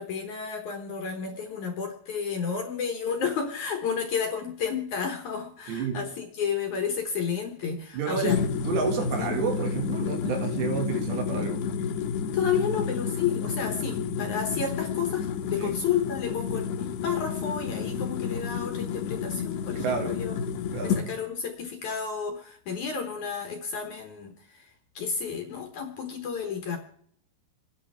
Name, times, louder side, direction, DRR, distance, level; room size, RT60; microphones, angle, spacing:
voice 1, 0.0-8.4 9.2-9.3 12.3-20.3 20.8-24.7 25.0-26.8, left 6 dB, 60° left, 4 dB, 2.1 m, -31 dB
voice 2, 5.7-6.1 7.9-8.3 8.7-11.6 15.6-15.7 19.8-20.2 20.7-21.0, right 6 dB, 90° right, 4 dB, 4.2 m, -30 dB
sound 1, 8.2-21.1, left 6 dB, 80° left, 3.1 m, -30 dB
28.5 x 11.0 x 3.5 m, 0.62 s
omnidirectional pair, 4.8 m